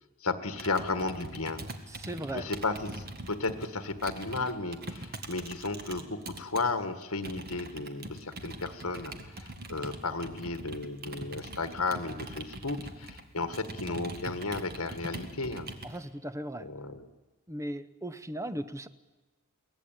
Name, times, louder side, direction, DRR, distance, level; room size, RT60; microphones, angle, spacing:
voice 1, 0.2-1.6 2.3-15.7 16.6-17.1, left 3 dB, 70° left, 10 dB, 1.6 m, -34 dB
Computer keyboard, 0.5-6.6 7.2-16.0, right 2 dB, 45° right, 1.9 m, -43 dB
voice 2, 2.0-2.5 15.8-16.7 17.5-18.9, right 1 dB, 15° right, 12 dB, 0.8 m, -37 dB
23.0 x 18.5 x 9.0 m, 1.2 s
head